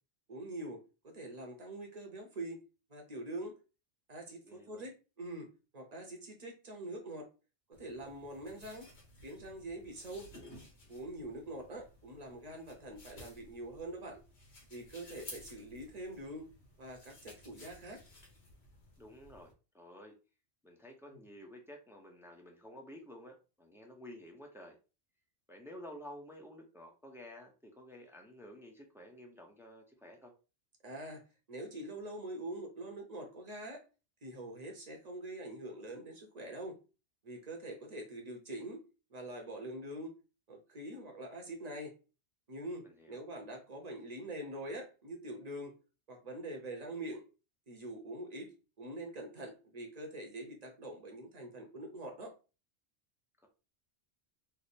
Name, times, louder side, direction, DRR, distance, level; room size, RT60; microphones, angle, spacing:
voice 1, 0.3-0.8 1.1-2.6 2.9-3.5 4.1-5.5 5.7-7.3 7.8-8.9 9.2-10.3 10.9-14.2 14.7-16.5 16.8-18.0 21.1-21.2 30.8-31.2 31.5-33.8 34.2-36.8 37.2-38.8 39.1-40.1 40.5-42.0 42.5-45.7 46.1-47.2 47.7-52.3, right 1 dB, 40° right, 2 dB, 0.8 m, -44 dB
voice 2, 4.4-4.8 19.0-20.1 20.6-24.8 25.5-30.3 42.8-43.2, left 1 dB, 5° right, 2 dB, 0.4 m, -52 dB
sound 1, 7.7-19.5, left 1 dB, 65° left, 1.5 m, -56 dB
3.3 x 2.0 x 4.1 m, 0.32 s
omnidirectional pair, 1.2 m